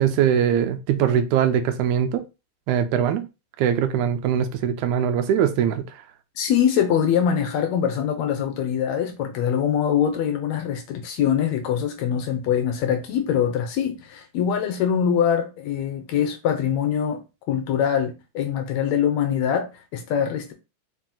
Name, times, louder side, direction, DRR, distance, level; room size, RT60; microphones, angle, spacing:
voice 1, 0.0-2.2 2.7-3.2 3.6-5.8, right 9 dB, 80° right, 1.9 m, -21 dB
voice 2, 6.4-17.2 17.5-20.5, left 8 dB, 75° left, 1.8 m, -23 dB
4.8 x 2.8 x 3.7 m
omnidirectional pair, 3.5 m